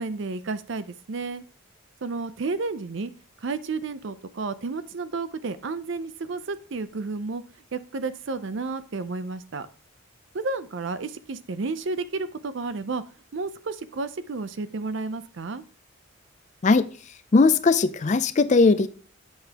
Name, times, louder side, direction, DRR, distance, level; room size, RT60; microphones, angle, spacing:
voice 1, 0.0-1.4 2.0-3.1 3.4-7.4 7.7-9.7 10.3-13.0 13.3-15.6, right 3 dB, 60° right, 13 dB, 0.5 m, -31 dB
voice 2, 17.3-18.9, left 3 dB, 35° left, 13 dB, 0.4 m, -19 dB
8.0 x 6.8 x 2.9 m, 0.39 s
head